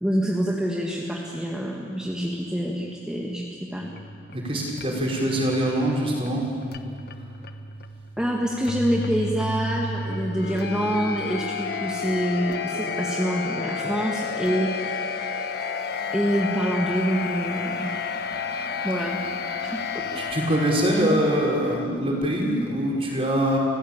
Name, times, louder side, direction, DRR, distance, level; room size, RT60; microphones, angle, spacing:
voice 1, 0.0-3.4 3.7-3.9 8.2-15.1 16.1-17.9 18.8-19.2 19.6-20.1, equal, 5° right, -3 dB, 1.8 m, -26 dB
sound 1, 3.8-21.9, left 4 dB, 60° left, 1.2 m, -32 dB
voice 2, 4.3-6.4 20.2-23.6, right 1 dB, 30° right, -2 dB, 5.5 m, -23 dB
30.0 x 15.5 x 8.9 m, 2.3 s
head